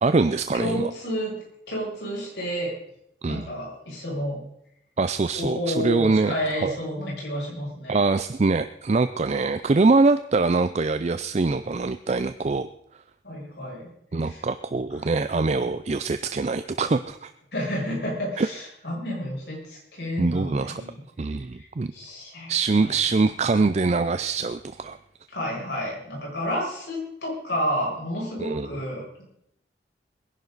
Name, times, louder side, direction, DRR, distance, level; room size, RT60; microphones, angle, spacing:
voice 1, 0.0-0.9 3.2-3.5 5.0-6.8 7.9-12.7 14.1-17.3 18.4-18.5 20.2-20.8 21.2-21.9 22.5-25.0 28.4-28.7, right 3 dB, 35° right, 11 dB, 0.4 m, -23 dB
voice 2, 0.5-1.3 1.7-2.7 3.3-4.4 5.4-8.0 13.2-13.9 14.2-14.4 15.6-15.7 17.5-21.0 21.6-21.7 21.9-22.5 25.3-29.2, equal, 70° left, -4 dB, 7.0 m, -30 dB
22.0 x 11.0 x 4.0 m, 0.76 s
head